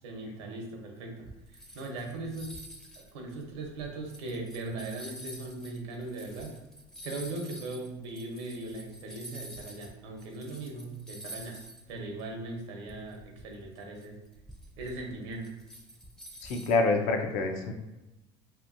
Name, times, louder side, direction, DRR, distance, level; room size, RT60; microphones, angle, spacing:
voice 1, 0.0-2.5 3.0-6.5 7.0-11.5 11.9-14.2 14.8-15.5, right 2 dB, 90° right, 1 dB, 0.8 m, -39 dB
sound 1, 1.2-9.9 10.2-11.9 12.2-12.3 12.9-16.8, equal, 5° left, 0.4 m, -48 dB
voice 2, 16.4-17.7, left 3 dB, 70° left, 4 dB, 0.5 m, -27 dB
2.8 x 2.6 x 2.5 m, 1.0 s
supercardioid pair, 115°, 14 cm